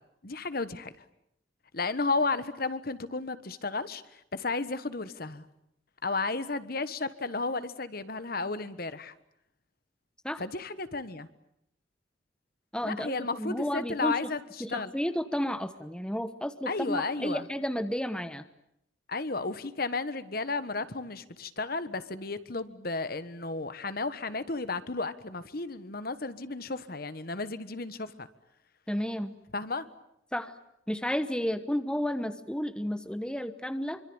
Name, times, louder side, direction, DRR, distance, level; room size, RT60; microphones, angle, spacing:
voice 1, 0.2-0.9 1.7-4.0 4.3-5.4 6.0-9.1 10.4-11.3 12.8-14.9 16.7-17.4 19.1-28.3 29.5-29.9, left 3 dB, 50° left, 13 dB, 1.4 m, -33 dB
voice 2, 12.7-14.3 14.6-18.4 28.9-29.3 30.3-30.5 30.9-34.0, equal, 5° left, 9 dB, 1.1 m, -32 dB
26.5 x 25.0 x 8.9 m, 0.76 s
head